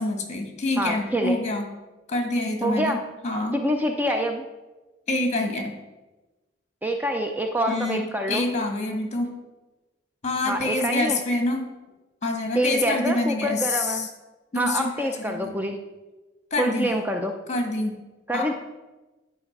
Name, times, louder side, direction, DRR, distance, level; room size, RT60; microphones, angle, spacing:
voice 1, 0.0-1.7 2.1-3.6 5.1-5.7 7.7-9.3 10.2-11.7 12.2-14.1 14.5-15.5 16.5-16.9 17.5-17.9 18.3-18.4, left 2 dB, 40° left, 3 dB, 1.6 m, -26 dB
voice 2, 0.8-1.4 2.6-3.0 3.5-4.4 6.8-8.5 10.5-11.2 12.6-14.1 14.5-15.8 16.6-17.3 18.3-18.5, equal, 10° right, 4 dB, 0.5 m, -26 dB
10.5 x 5.0 x 5.9 m, 1.1 s
head